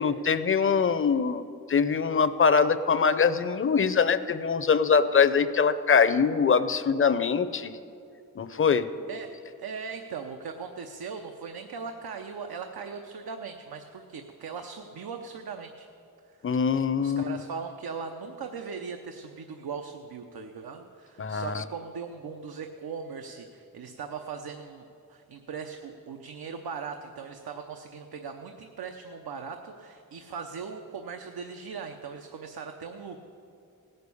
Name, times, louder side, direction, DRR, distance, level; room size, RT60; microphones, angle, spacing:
voice 1, 0.0-7.7 8.4-8.9 16.4-17.4 21.2-21.6, left 6 dB, 35° left, 11 dB, 0.6 m, -23 dB
voice 2, 9.1-15.9 16.3-16.6 16.9-33.2, right 5 dB, 90° right, 4 dB, 0.8 m, -39 dB
17.5 x 6.7 x 8.4 m, 2.6 s
wide cardioid pair, 120°, 36 cm